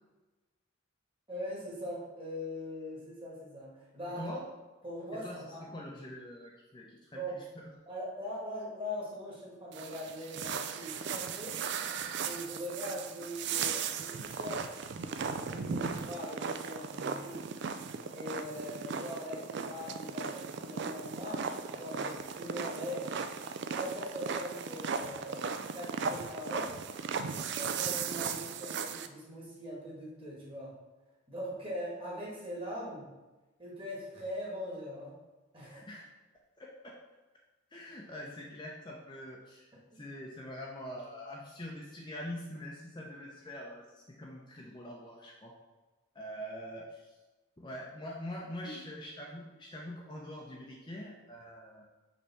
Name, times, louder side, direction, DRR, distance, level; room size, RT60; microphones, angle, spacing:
voice 1, 1.3-4.4 4.8-5.6 7.1-7.3 7.9-11.6 12.2-17.5 18.1-23.1 23.7-26.8 27.3-30.7 31.3-33.1 33.6-35.2 35.5-35.8 39.9-40.0 48.6-48.8, equal, 25° right, -5 dB, 1.7 m, -41 dB
voice 2, 4.1-4.5 5.1-7.4 35.6-36.1 36.6-36.9 37.7-39.7 39.9-45.5 46.1-47.2 47.6-51.8, left 1 dB, 20° left, -3 dB, 0.6 m, -44 dB
sound 1, 9.7-29.1, right 6 dB, 50° right, 0.3 m, -37 dB
5.5 x 3.3 x 5.7 m, 1.1 s
head